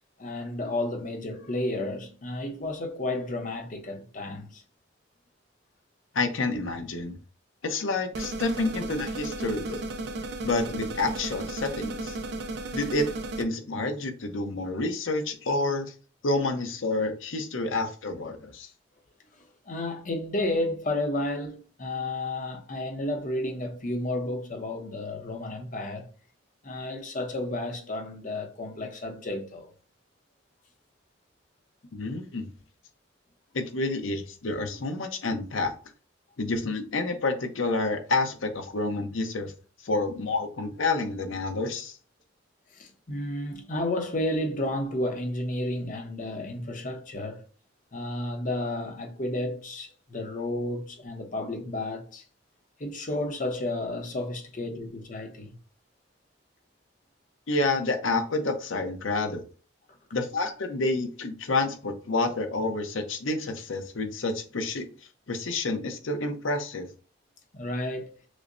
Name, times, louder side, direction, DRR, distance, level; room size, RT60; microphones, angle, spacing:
voice 1, 0.2-4.6 19.7-26.1 26.6-29.7 42.7-47.4 47.9-52.2 52.8-55.5 67.5-68.1, left 1 dB, 40° left, 0.8 m, -32 dB
voice 2, 6.1-7.2 7.6-9.8 10.4-12.2 12.7-13.1 13.4-15.9 16.2-18.7 31.9-32.5 33.5-35.7 36.4-39.5 39.8-42.0 57.5-59.4 60.1-64.8 65.3-66.9, left 2 dB, 90° left, 0.7 m, -29 dB
sound 1, 8.1-13.4, right 2 dB, 55° right, 0.5 m, -34 dB
6.2 x 2.1 x 2.6 m
head